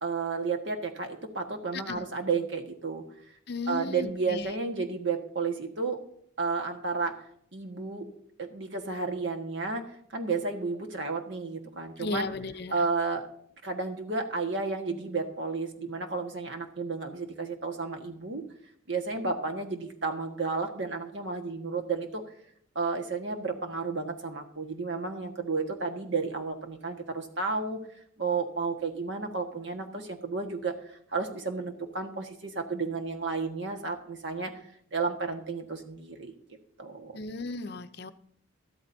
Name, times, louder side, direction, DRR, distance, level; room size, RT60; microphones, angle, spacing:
voice 1, 0.0-3.0 3.7-6.0 6.4-7.2 7.5-8.1 8.4-12.3 12.7-13.3 13.6-18.4 18.9-22.2 22.7-27.8 28.2-34.5 34.9-36.3 36.8-37.1, right 4 dB, 60° right, 3 dB, 1.6 m, -32 dB
voice 2, 1.7-2.0 3.5-4.5 12.0-12.8 37.1-38.1, left 3 dB, 55° left, 11 dB, 0.6 m, -35 dB
13.5 x 13.0 x 2.7 m, 0.65 s
head